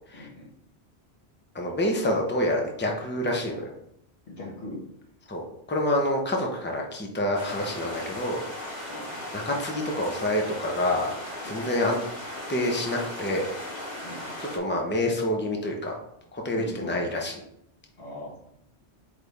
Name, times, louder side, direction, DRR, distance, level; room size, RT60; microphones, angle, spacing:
voice 1, 0.1-0.5 4.3-4.8 8.9-9.1 11.4-11.6 14.0-14.3 16.5-17.2 18.0-18.4, left 1 dB, 80° left, -3 dB, 1.9 m, -39 dB
voice 2, 1.5-3.7 5.3-8.9 9.3-11.1 11.4-12.0 12.5-13.5 14.4-15.9 16.3-17.3, left 1 dB, 10° left, 0 dB, 0.9 m, -27 dB
sound 1, 7.3-14.6, left 1 dB, 45° left, 1.6 m, -37 dB
8.2 x 3.5 x 3.5 m, 0.75 s
omnidirectional pair, 1.1 m